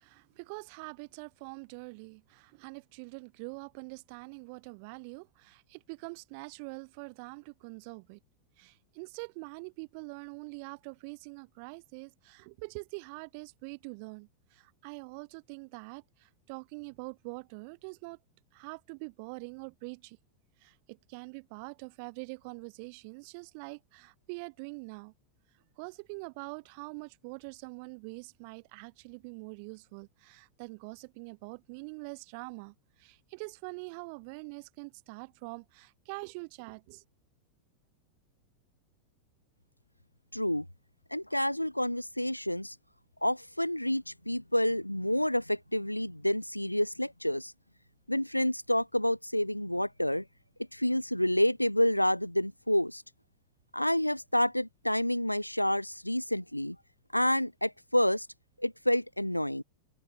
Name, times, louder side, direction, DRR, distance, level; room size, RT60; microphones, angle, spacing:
voice 1, 0.0-8.2 8.6-18.2 18.5-20.2 20.6-25.1 25.8-37.0, right 33 dB, 45° right, 4.0 m, -44 dB
voice 2, 40.3-40.6 41.1-42.7 43.2-47.5 48.1-50.2 50.7-53.0 53.7-56.8 57.1-58.3 58.6-59.6, left 1 dB, 90° left, 3.3 m, -29 dB
figure-of-eight pair, 90°, 0 cm